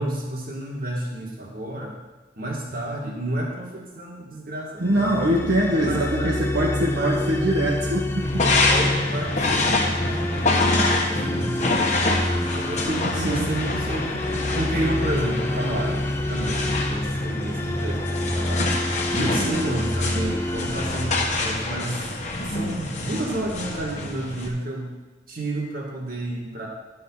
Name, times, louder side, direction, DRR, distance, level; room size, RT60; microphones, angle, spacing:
voice 1, 0.0-2.0 2.4-5.1 5.7-6.3 6.8-7.2 8.7-12.9 13.2-14.2 14.5-18.8 19.1-22.1 22.5-24.9 25.3-26.7, right 1 dB, 50° right, -2 dB, 2.2 m, -31 dB
voice 2, 4.8-8.5 12.9-13.5 19.1-19.6, right 1 dB, 65° right, -5 dB, 1.4 m, -24 dB
sound 1, 4.9-22.0, left 1 dB, 15° left, 0.4 m, -28 dB
sound 2, 8.2-24.5, left 2 dB, 40° left, 1.3 m, -26 dB
11.5 x 5.7 x 5.7 m, 1.2 s
head